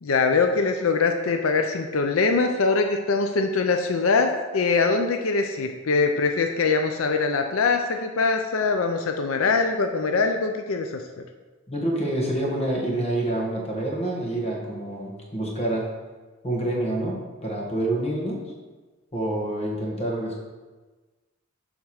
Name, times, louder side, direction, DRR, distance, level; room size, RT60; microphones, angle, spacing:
voice 1, 0.0-11.0, left 4 dB, 85° left, 5 dB, 0.5 m, -23 dB
voice 2, 11.7-15.9 16.4-18.4 19.1-20.4, right 1 dB, 30° left, -2 dB, 1.6 m, -27 dB
7.3 x 3.6 x 6.4 m, 1.3 s
head